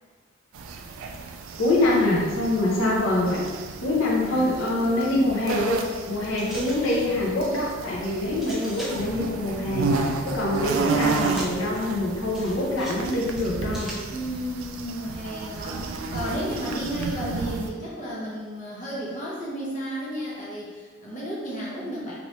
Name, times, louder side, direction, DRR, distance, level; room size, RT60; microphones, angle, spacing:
sound 1, 0.5-17.7, right 3 dB, 75° right, 0.3 m, -32 dB
voice 1, 1.6-3.4 3.8-5.8 6.1-13.9, left 1 dB, 75° left, -4 dB, 0.7 m, -24 dB
sound 2, 6.4-7.1 8.4-9.1 11.0-11.7 12.3-13.1 13.4-14.1, equal, ahead, 0.4 m, -40 dB
voice 2, 14.1-22.1, equal, 35° left, -6 dB, 0.7 m, -33 dB
3.0 x 2.8 x 3.1 m, 1.5 s
head